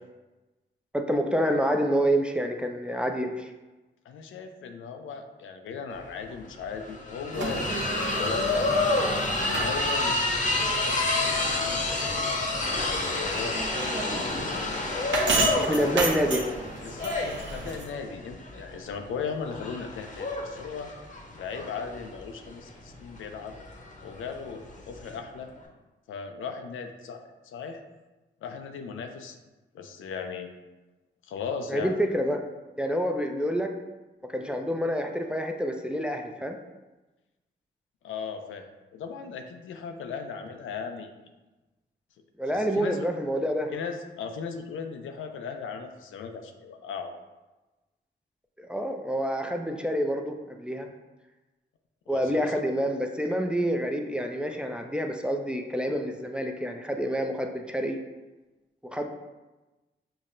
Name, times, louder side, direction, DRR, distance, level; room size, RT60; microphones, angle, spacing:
voice 1, 0.9-3.5 15.6-16.5 31.7-32.4 32.8-33.7 34.3-36.6 42.4-43.7 48.6-50.9 52.1-58.0 58.8-59.0, equal, 5° right, 4 dB, 0.3 m, -27 dB
voice 2, 4.1-8.7 9.5-12.3 12.8-14.9 15.5-15.9 16.2-16.4 16.8-20.9 21.3-23.5 24.0-25.5 26.1-27.8 28.4-29.4 29.7-30.6 31.2-31.9 38.0-38.7 38.9-41.1 42.5-43.1 43.7-47.1 52.1-52.6, left 5 dB, 85° left, 5 dB, 0.4 m, -37 dB
sound 1, 6.0-6.1 6.3-25.2, left 2 dB, 40° left, 0.7 m, -29 dB
sound 2, 7.3-17.9, right 3 dB, 65° right, 0.8 m, -33 dB
5.7 x 2.1 x 2.5 m, 1.1 s
cardioid pair, 65°, 20 cm